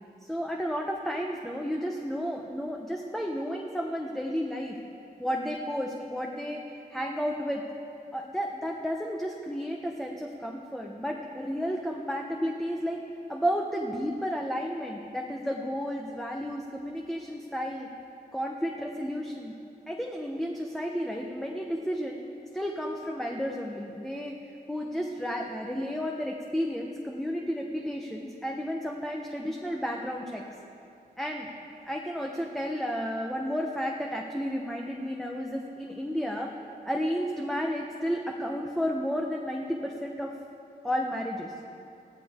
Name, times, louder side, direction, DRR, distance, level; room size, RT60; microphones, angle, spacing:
voice 1, 0.2-4.8 5.2-6.6 6.9-7.6 8.1-13.0 13.3-17.9 18.3-19.5 19.9-22.2 22.5-30.4 31.2-31.5 31.8-36.5 36.8-40.3 40.8-41.5, equal, ahead, 0 dB, 1.1 m, -32 dB
21.0 x 14.5 x 3.7 m, 2.5 s
wide cardioid pair, 125°, 17 cm